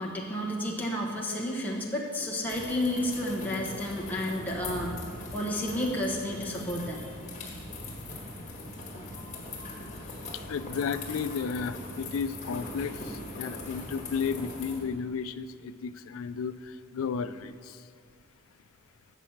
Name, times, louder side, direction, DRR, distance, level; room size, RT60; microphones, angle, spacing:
voice 1, 0.0-5.0 5.3-7.1, left 1 dB, 10° left, -3 dB, 1.1 m, -31 dB
sound 1, 2.5-14.8, left 2 dB, 35° left, 1.6 m, -40 dB
voice 2, 10.3-17.8, left 6 dB, 70° left, 13 dB, 0.4 m, -33 dB
7.3 x 6.1 x 7.2 m, 2.2 s
head